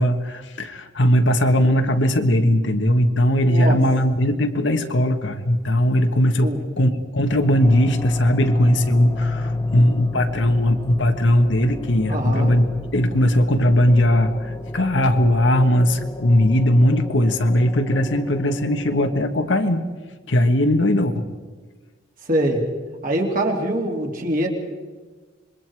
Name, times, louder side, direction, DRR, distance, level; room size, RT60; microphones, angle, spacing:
voice 1, 0.0-12.6 12.9-19.8 20.3-21.3, left 1 dB, 75° left, 6 dB, 1.5 m, -19 dB
voice 2, 3.5-3.8 6.4-6.6 12.1-12.5 22.3-22.7 23.0-24.5, right 1 dB, 50° right, 1 dB, 3.1 m, -23 dB
sound 1, 7.3-19.3, left 2 dB, 20° left, 1.1 m, -30 dB
26.5 x 22.0 x 4.8 m, 1.4 s
head